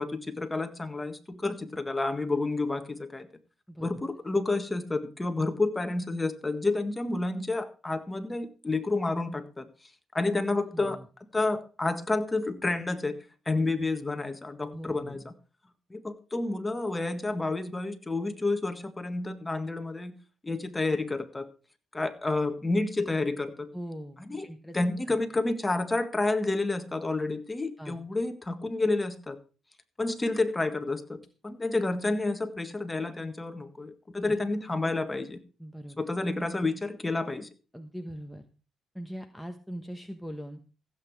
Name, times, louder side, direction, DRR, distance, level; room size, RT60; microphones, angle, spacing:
voice 1, 0.0-3.3 3.8-9.9 10.1-11.0 11.3-15.3 15.9-20.2 20.4-21.5 21.9-23.7 24.3-24.5 24.7-29.4 30.0-35.4 36.0-37.5, left 2 dB, 15° left, 8 dB, 1.7 m, -30 dB
voice 2, 10.7-11.1 14.7-15.3 23.7-24.8 25.1-25.2 27.8-28.0 34.2-34.3 35.6-36.0 37.7-38.4 38.9-40.6, equal, ahead, 5 dB, 1.2 m, -41 dB
15.5 x 8.3 x 4.7 m, 0.35 s
cardioid pair, 90°, 0 cm